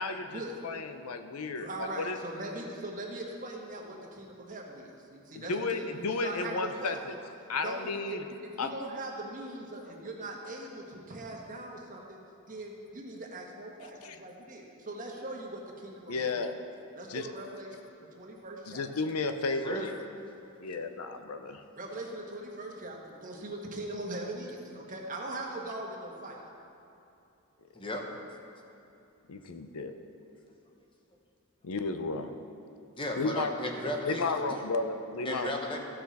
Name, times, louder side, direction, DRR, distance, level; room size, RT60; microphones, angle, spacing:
voice 1, 0.0-2.2 5.4-7.1 7.5-8.2 8.6-8.7 14.0-14.2 16.1-16.5 17.1-17.3 18.7-19.9 20.6-21.6 29.3-29.9 31.6-32.3 33.1-33.5 34.1-35.5, left 3 dB, 80° left, 7 dB, 0.6 m, -33 dB
voice 2, 1.4-7.2 7.6-12.2 12.5-16.3 16.9-18.9 21.7-26.5, right 1 dB, 35° right, 0 dB, 1.2 m, -41 dB
voice 3, 27.7-28.1 32.9-34.2 35.2-35.8, left 1 dB, 25° left, 2 dB, 0.9 m, -34 dB
15.0 x 6.3 x 4.1 m, 2.7 s
head